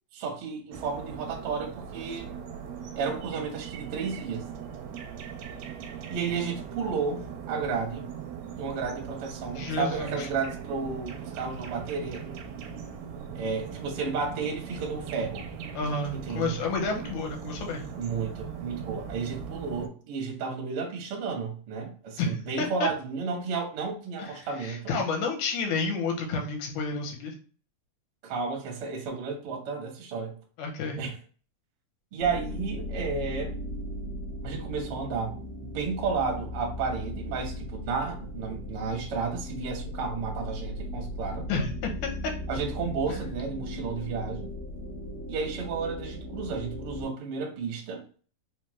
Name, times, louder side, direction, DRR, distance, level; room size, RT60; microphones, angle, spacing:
voice 1, 0.1-2.3 2.9-4.5 6.1-8.1 8.6-12.4 13.3-15.5 16.1-16.6 18.0-24.9 28.2-30.4 31.0-31.2 32.1-33.5 34.4-35.4 35.6-41.5 42.5-44.5 45.3-48.1, right 5 dB, 65° right, 1.4 m, -32 dB
sound 1, 0.7-19.9, right 7 dB, 90° right, 2.2 m, -40 dB
voice 2, 9.6-10.3 15.7-17.8 22.2-22.9 24.2-27.4 30.6-31.0 41.5-41.9 42.2-42.3, left 4 dB, 75° left, 2.2 m, -30 dB
sound 2, 32.2-47.0, left 1 dB, 55° left, 1.0 m, -37 dB
5.0 x 2.2 x 3.0 m
omnidirectional pair, 3.7 m